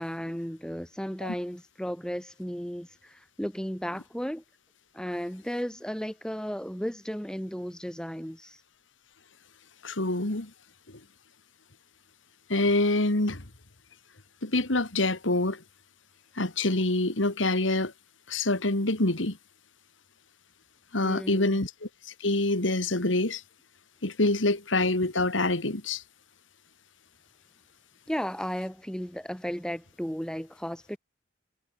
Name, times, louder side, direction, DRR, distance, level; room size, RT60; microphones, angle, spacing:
voice 1, 0.0-4.4 4.9-8.6 21.0-21.6 28.1-31.0, equal, 5° left, 1.8 m, -34 dB
voice 2, 9.8-10.5 10.9-11.0 12.5-13.4 14.4-15.6 16.4-17.9 18.3-19.4 20.9-21.7 22.2-23.4 24.0-26.0, left 2 dB, 85° left, 2.8 m, -26 dB
head